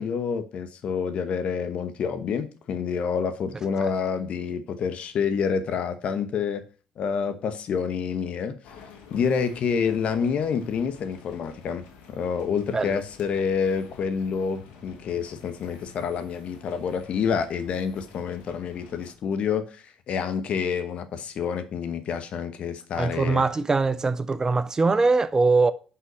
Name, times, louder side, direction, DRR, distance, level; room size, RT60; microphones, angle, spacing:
voice 1, 0.0-6.6 7.0-8.6 9.1-23.4, left 6 dB, 55° left, 1.1 m, -28 dB
sound 1, 8.6-19.1, left 5 dB, 75° left, 1.5 m, -50 dB
voice 2, 23.0-25.7, right 3 dB, 25° right, 0.6 m, -22 dB
5.7 x 5.6 x 6.4 m
hypercardioid pair, 60°, 2 cm